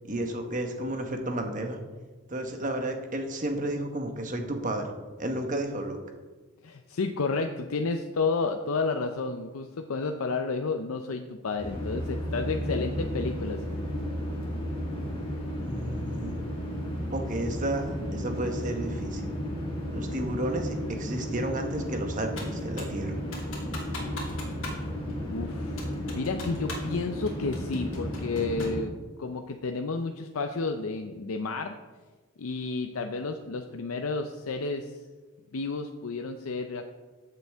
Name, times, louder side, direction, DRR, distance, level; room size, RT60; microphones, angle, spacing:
voice 1, 0.0-1.8 2.3-4.9 5.2-6.0 15.6-16.3 17.1-19.3 19.9-23.1, right 1 dB, 35° right, 4 dB, 1.2 m, -32 dB
voice 2, 6.6-13.6 25.3-28.9 29.2-31.7 32.4-35.0 35.5-36.9, left 4 dB, 80° left, 6 dB, 0.6 m, -31 dB
sound 1, 11.6-28.8, equal, 25° left, 2.0 m, -33 dB
Computer keyboard, 22.4-23.0 23.3-24.8 25.1-25.2 25.8-26.9 27.3-28.8, left 2 dB, 65° left, 2.6 m, -40 dB
14.5 x 6.8 x 3.5 m, 1.3 s
head